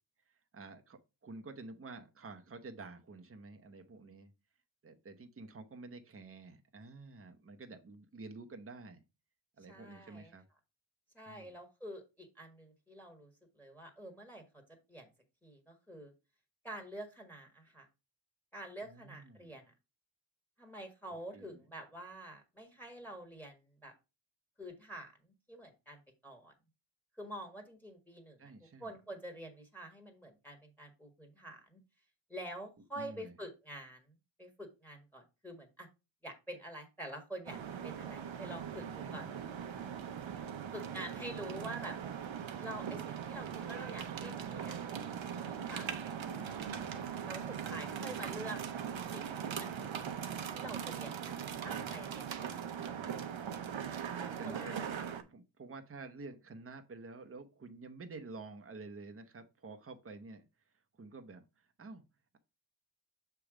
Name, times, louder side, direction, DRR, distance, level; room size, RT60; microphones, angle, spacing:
voice 1, 0.3-4.3 4.8-9.0 9.6-10.5 11.3-11.6 18.8-19.6 21.1-21.6 28.4-28.9 32.9-33.3 38.8-39.9 41.0-41.1 47.7-48.5 54.3-60.4 61.0-62.0, right 3 dB, 30° right, 5 dB, 0.9 m, -50 dB
voice 2, 9.7-10.3 11.1-13.3 13.6-14.6 14.9-15.1 15.4-16.1 16.6-17.9 18.5-19.7 20.6-23.9 24.6-26.5 27.2-28.4 28.8-31.8 32.3-34.1 34.4-35.9 36.2-37.6 37.8-38.9 39.1-39.3 40.7-42.0 42.6-46.5 47.2-48.6 49.1-50.0 50.5-51.4 51.6-52.4 54.4-54.7, right 1 dB, 5° left, 4 dB, 1.6 m, -47 dB
sound 1, 37.5-55.2, right 8 dB, 75° right, 0.9 m, -40 dB
6.8 x 3.4 x 4.9 m, 0.27 s
wide cardioid pair, 105°, 46 cm